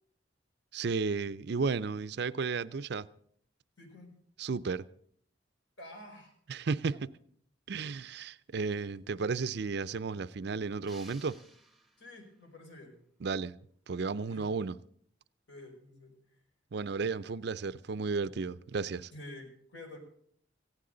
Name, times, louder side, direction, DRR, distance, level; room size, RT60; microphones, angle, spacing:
voice 1, 0.7-3.1 4.4-4.8 6.5-7.1 7.7-11.4 13.2-13.6 13.9-14.8 16.7-19.1, right 4 dB, 60° right, 0.5 m, -33 dB
voice 2, 3.8-4.1 5.8-6.3 12.0-13.0 14.3-14.5 15.5-16.1 19.1-20.0, left 1 dB, 70° left, 4.7 m, -49 dB
sound 1, 10.9-12.4, right 2 dB, ahead, 0.9 m, -56 dB
18.0 x 15.5 x 3.9 m
head